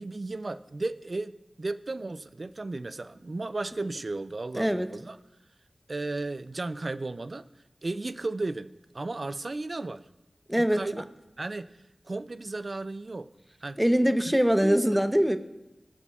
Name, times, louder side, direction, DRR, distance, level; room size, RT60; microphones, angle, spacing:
voice 1, 0.0-1.3 1.6-5.2 5.9-7.5 7.8-8.7 8.9-10.0 10.7-11.0 11.4-11.7 12.1-13.3 13.6-13.8 14.6-15.0, right 2 dB, 55° right, 13 dB, 0.4 m, -34 dB
voice 2, 4.5-4.9 10.5-11.0 13.8-15.4, equal, 5° right, 9 dB, 0.7 m, -23 dB
20.0 x 7.0 x 2.4 m, 0.99 s
cardioid pair, 45°, 0 cm